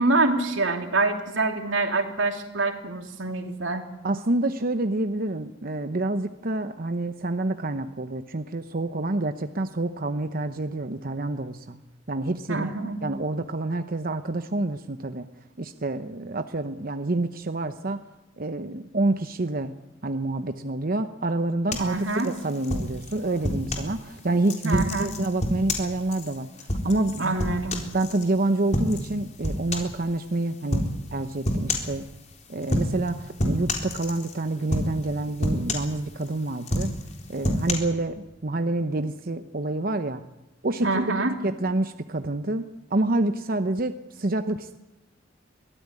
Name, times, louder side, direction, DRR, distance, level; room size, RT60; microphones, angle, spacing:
voice 1, 0.0-3.9 12.5-13.0 21.8-22.3 24.6-25.1 27.2-27.8 40.8-41.3, right 2 dB, 90° right, 5 dB, 3.1 m, -25 dB
voice 2, 4.0-11.8 12.1-12.7 13.0-15.3 15.6-18.0 18.4-19.7 20.0-27.4 27.9-32.1 32.5-36.9 37.3-40.3 40.6-41.0 41.4-44.8, right 2 dB, 50° right, 8 dB, 0.9 m, -28 dB
sound 1, 21.7-23.9 24.4-28.3 28.7-29.1 29.4-30.0 30.7-30.9 31.4-32.0 32.6-33.1 33.4-34.4 34.7-35.1 35.4-36.3 36.6-37.7, left 1 dB, 35° left, 4.0 m, -28 dB
23.0 x 16.0 x 9.7 m, 1.0 s
head